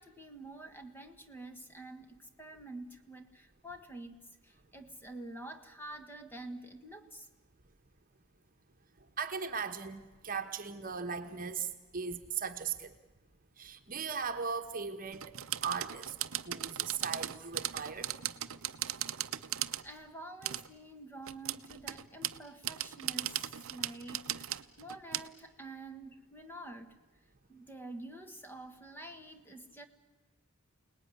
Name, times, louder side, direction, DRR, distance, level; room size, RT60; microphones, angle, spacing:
voice 1, 0.0-7.3 19.8-27.0 27.5-29.8, right 2 dB, 10° left, 6 dB, 1.6 m, -48 dB
voice 2, 9.2-12.9 13.6-15.3 15.6-16.2 16.4-18.1, right 6 dB, 40° right, 8 dB, 1.3 m, -38 dB
sound 1, 15.1-19.9 20.4-20.7 21.3-25.3, right 13 dB, 70° right, 0.8 m, -37 dB
28.5 x 19.5 x 9.8 m, 1.2 s
head